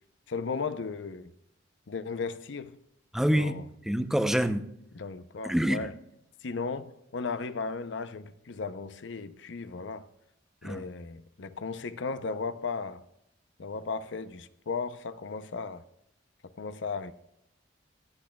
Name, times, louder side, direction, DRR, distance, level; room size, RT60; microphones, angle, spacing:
voice 1, 0.3-1.3 1.9-2.8 3.3-3.7 4.9-5.9 6.4-10.0 10.6-13.0 13.6-15.8 16.6-17.1, left 4 dB, 70° left, 0.6 m, -35 dB
voice 2, 3.1-3.6 3.9-4.7 5.5-5.8 10.6-10.8, equal, ahead, 0.6 m, -26 dB
24.0 x 8.5 x 2.3 m
head